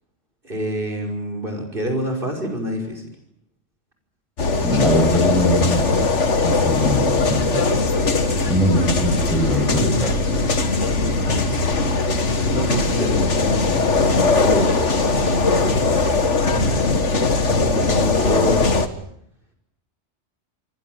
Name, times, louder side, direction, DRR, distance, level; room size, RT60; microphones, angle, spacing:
voice 1, 0.4-3.0 12.4-13.6 14.4-16.2 16.5-17.1 17.5-18.8, equal, 50° right, 3 dB, 5.8 m, -27 dB
sound 1, 4.4-18.9, left 3 dB, 85° left, 2.1 m, -20 dB
voice 2, 4.6-5.8 6.4-7.7 8.5-10.5 11.2-11.6, equal, ahead, 4 dB, 6.8 m, -22 dB
28.0 x 21.5 x 9.5 m, 0.73 s
omnidirectional pair, 1.2 m